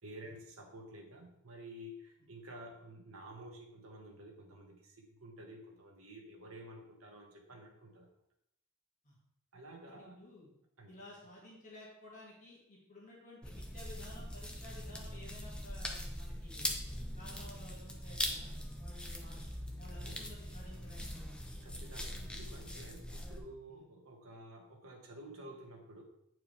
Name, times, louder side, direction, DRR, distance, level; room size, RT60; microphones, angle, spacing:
voice 1, 0.0-8.1 9.5-10.2 10.8-10.9 20.0-20.2 21.6-26.0, right 1 dB, 70° right, 1 dB, 1.4 m, -51 dB
voice 2, 9.9-10.5 10.9-16.8 17.2-18.5 18.8-19.4 19.7-21.4 23.7-23.8, left 1 dB, 35° left, -4 dB, 1.9 m, -54 dB
sound 1, 13.4-23.4, left 1 dB, 5° left, 0.7 m, -42 dB
8.7 x 4.7 x 3.2 m, 0.78 s
head